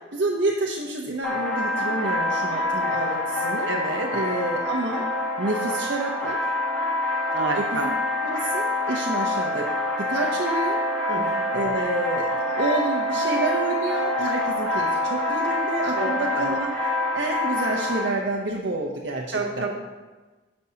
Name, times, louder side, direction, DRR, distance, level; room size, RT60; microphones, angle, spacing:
voice 1, 0.1-3.7 4.1-5.1 5.4-6.5 7.5-7.9 8.2-9.7 10.0-10.8 11.5-16.8 17.1-19.7, right 2 dB, 65° right, -2 dB, 0.7 m, -29 dB
sound 1, 1.2-18.1, left 1 dB, 10° left, 1.8 m, -26 dB
voice 2, 3.7-4.1 7.3-7.8 11.1-11.2 15.9-16.1 16.4-16.5 19.3-19.8, right 3 dB, 80° right, 2 dB, 1.1 m, -28 dB
13.0 x 5.4 x 2.8 m, 1.2 s
head